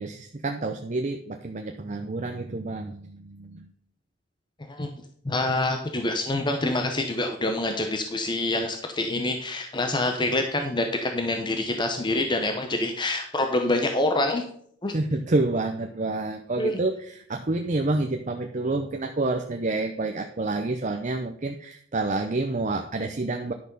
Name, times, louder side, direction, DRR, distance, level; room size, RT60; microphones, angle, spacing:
voice 1, 0.0-3.7 14.9-23.5, right 2 dB, 40° right, 5 dB, 0.7 m, -28 dB
voice 2, 5.2-14.4 14.8-14.9 16.6-16.8, left 2 dB, 25° left, 5 dB, 0.8 m, -26 dB
10.5 x 6.3 x 5.3 m, 0.64 s
head